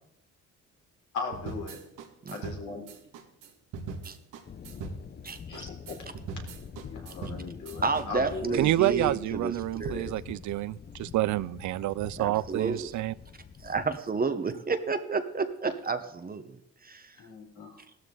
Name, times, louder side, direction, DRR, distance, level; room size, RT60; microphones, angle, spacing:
voice 1, 1.1-1.8 2.3-2.8 5.5-5.7 6.8-8.6 17.2-17.8, left 4 dB, 75° left, 4.0 m, -38 dB
sound 1, 1.3-8.1, right 5 dB, 90° right, 2.0 m, -41 dB
sound 2, 4.5-14.0, left 7 dB, 35° left, 0.7 m, -45 dB
voice 2, 7.8-10.1 12.2-12.9 13.6-17.2, right 4 dB, 30° right, 1.1 m, -31 dB
voice 3, 8.5-13.1, right 15 dB, 70° right, 0.5 m, -28 dB
15.5 x 13.0 x 3.9 m
cardioid pair, 90°, 30 cm